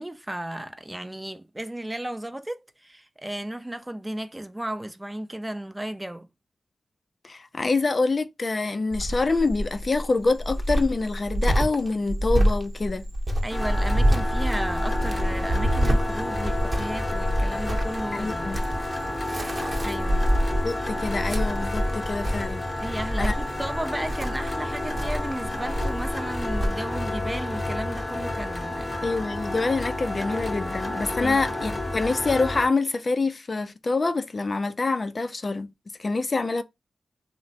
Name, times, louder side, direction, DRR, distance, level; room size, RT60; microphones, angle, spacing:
voice 1, 0.0-6.3 13.4-18.6 19.8-20.3 22.8-29.0 31.2-31.4, right 1 dB, 15° right, 0.4 m, -34 dB
voice 2, 7.2-13.0 18.1-18.6 20.6-22.6 23.2-23.3 29.0-35.7 36.0-36.6, left 3 dB, 50° left, 0.4 m, -26 dB
Cricket, 8.9-26.7, equal, 45° right, 0.8 m, -26 dB
sound 1, 13.5-32.7, left 1 dB, 30° left, 0.7 m, -30 dB
2.9 x 2.1 x 2.7 m
cardioid pair, 45°, 0 cm